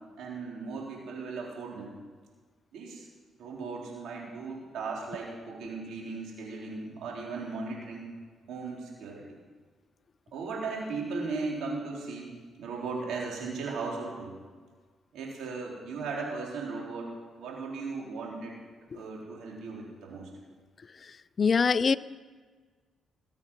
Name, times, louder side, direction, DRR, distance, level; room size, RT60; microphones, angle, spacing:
voice 1, 0.2-1.9 2.7-3.1 3.4-8.1 8.5-9.4 10.3-14.4 15.1-17.1 17.4-18.5 18.9-20.3, right 4 dB, 80° right, -2 dB, 4.0 m, -37 dB
voice 2, 21.4-22.0, left 5 dB, 45° left, 16 dB, 0.5 m, -23 dB
20.5 x 8.4 x 5.6 m, 1.5 s
supercardioid pair, 65°, 0 cm